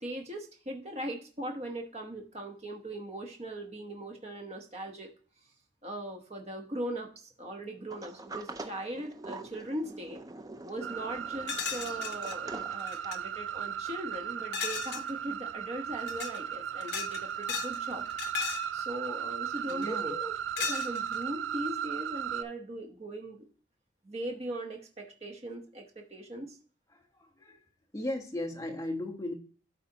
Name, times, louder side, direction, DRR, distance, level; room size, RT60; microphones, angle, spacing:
voice 1, 0.0-5.1 5.8-10.2 10.6-18.0 18.4-20.3 20.7-23.5 24.0-26.6, right 1 dB, 35° right, 2 dB, 0.9 m, -39 dB
Sliding door, 7.9-13.3, right 2 dB, 20° right, 0.4 m, -45 dB
sound 1, 10.8-22.4, right 9 dB, 85° right, 0.4 m, -36 dB
sound 2, 11.5-12.4 12.8-13.2 14.5-15.1 16.0-16.4 16.8-17.8 18.1-18.7 19.7-20.0 20.6-21.2, left 7 dB, 65° left, 0.8 m, -36 dB
voice 2, 19.7-20.2 26.9-27.6 27.9-29.3, left 1 dB, 15° left, 2 dB, 1.1 m, -37 dB
12.0 x 4.1 x 2.8 m, 0.40 s
head